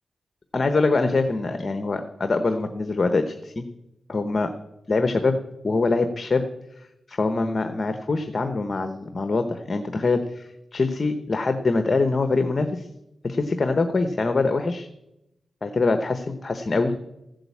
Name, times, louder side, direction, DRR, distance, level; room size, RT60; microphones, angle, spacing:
voice 1, 0.5-3.6 4.1-4.5 4.9-5.3 5.6-6.4 7.1-12.9 13.2-14.9 15.6-16.9, left 3 dB, 40° left, 8 dB, 1.0 m, -24 dB
14.5 x 7.8 x 8.5 m, 0.91 s
cardioid pair, 90°, 0 cm